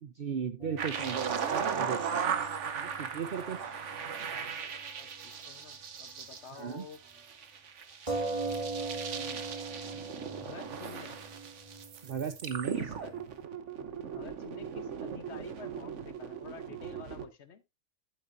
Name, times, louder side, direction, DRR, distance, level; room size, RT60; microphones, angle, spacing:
voice 1, 0.0-2.2 2.8-3.7 6.5-6.9 12.0-12.8, right 7 dB, 55° right, 8 dB, 0.9 m, -36 dB
sound 1, 0.6-4.5 4.7-4.8 8.1-13.3, right 3 dB, 25° right, 1.8 m, -41 dB
sound 2, 0.8-17.2, right 7 dB, 70° right, 1.4 m, -37 dB
voice 2, 5.5-7.0 8.5-9.5 10.3-11.2 12.7-13.1 13.8-17.6, left 6 dB, 60° left, 11 dB, 1.3 m, -50 dB
11.5 x 8.5 x 2.6 m, 0.22 s
omnidirectional pair, 1.3 m